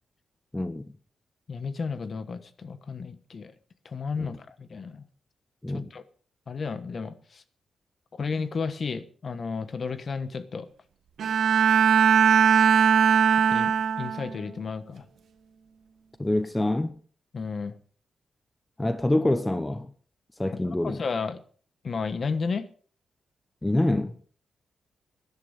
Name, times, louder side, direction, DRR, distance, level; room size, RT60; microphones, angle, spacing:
voice 1, 0.5-0.9 4.2-4.3 5.6-5.9 16.2-17.0 18.8-19.9 20.4-21.0 23.6-24.2, left 1 dB, 10° left, 0.8 m, -26 dB
voice 2, 1.5-3.5 3.8-5.0 5.7-6.0 6.5-7.4 8.1-10.7 13.5-15.0 17.3-17.7 20.8-21.4 21.8-22.7, left 5 dB, 45° left, 1.2 m, -32 dB
Bowed string instrument, 11.2-14.4, right 7 dB, 70° right, 1.5 m, -20 dB
14.0 x 11.0 x 5.5 m
wide cardioid pair, 135°, 0 cm